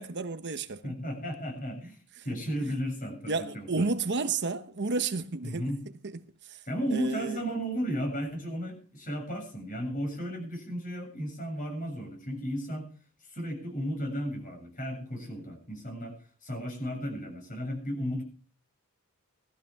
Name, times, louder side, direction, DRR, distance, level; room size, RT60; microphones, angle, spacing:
voice 1, 0.0-0.9 3.3-5.6 6.0-6.2 6.4-6.6 6.9-7.4, right 3 dB, 55° right, 1.0 m, -31 dB
voice 2, 0.8-2.0 2.2-3.9 5.4-5.8 6.7-12.9 13.2-16.1 16.4-18.2, equal, 40° left, 7.2 m, -34 dB
19.0 x 14.5 x 3.5 m
head